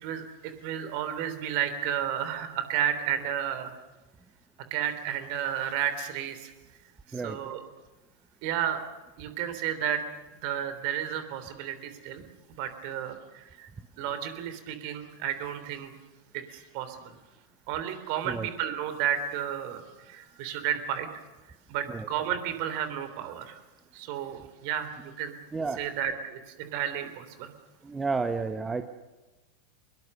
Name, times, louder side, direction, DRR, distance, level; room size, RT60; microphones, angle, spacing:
voice 1, 0.0-3.8 4.7-6.5 7.1-7.6 8.4-8.8 9.2-10.0 10.4-12.2 12.6-13.7 14.0-15.9 16.3-17.1 17.7-21.1 21.7-23.6 23.9-25.4 25.8-27.5, right 9 dB, 45° right, 10 dB, 3.3 m, -32 dB
voice 2, 27.8-28.8, right 4 dB, 15° right, 9 dB, 1.1 m, -31 dB
24.0 x 21.5 x 6.7 m, 1.2 s
figure-of-eight pair, 90°, 0 cm